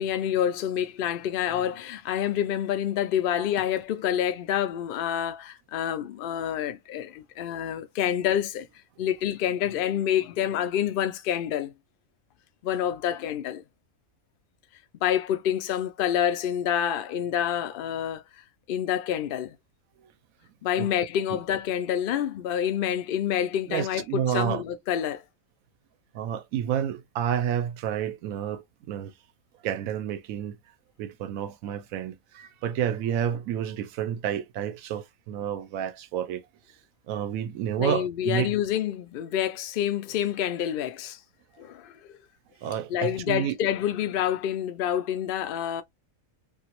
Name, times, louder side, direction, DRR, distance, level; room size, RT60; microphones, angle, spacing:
voice 1, 0.0-8.7 9.0-11.7 12.6-13.6 15.0-18.2 18.7-19.6 20.6-25.2 37.8-41.2 41.6-42.0 42.9-45.8, left 10 dB, 65° left, 0.5 m, -27 dB
voice 2, 23.7-24.6 26.1-29.1 29.6-30.6 31.0-36.4 37.1-38.5 42.6-43.6, right 9 dB, 85° right, 1.0 m, -30 dB
2.9 x 2.6 x 2.9 m
omnidirectional pair, 1.4 m